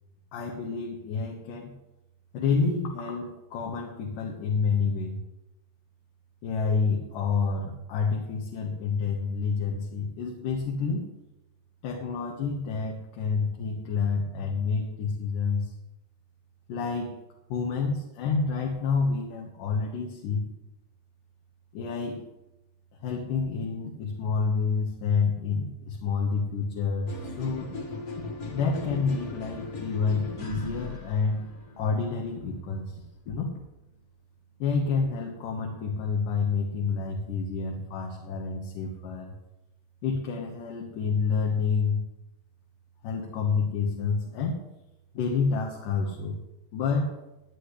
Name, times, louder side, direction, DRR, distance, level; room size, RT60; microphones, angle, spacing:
voice 1, 0.3-1.7 2.3-5.2 6.4-11.1 11.8-15.7 16.7-17.2 17.5-20.5 21.7-22.3 23.0-27.7 28.5-31.5 31.8-33.5 34.6-39.3 40.0-42.0 43.0-44.6 45.1-46.4 46.7-47.2, left 5 dB, 75° left, 0 dB, 2.9 m, -28 dB
sound 1, 27.1-33.0, left 2 dB, 40° left, 1.1 m, -39 dB
19.0 x 10.0 x 3.3 m, 0.95 s
omnidirectional pair, 3.8 m